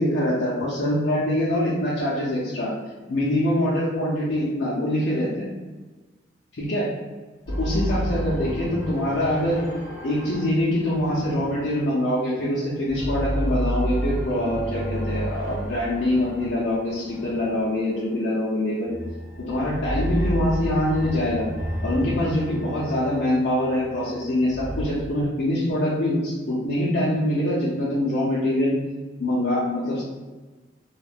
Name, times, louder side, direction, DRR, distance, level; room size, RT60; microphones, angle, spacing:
voice 1, 0.0-2.7 3.1-5.5 6.5-6.9 7.6-9.6 10.0-18.9 19.5-21.5 21.8-28.7 29.2-30.0, left 1 dB, 70° left, -9 dB, 0.6 m, -24 dB
sound 1, 7.5-12.4 12.8-18.1 18.8-24.9, equal, 40° right, 1.1 m, -31 dB
2.4 x 2.1 x 3.3 m, 1.3 s
head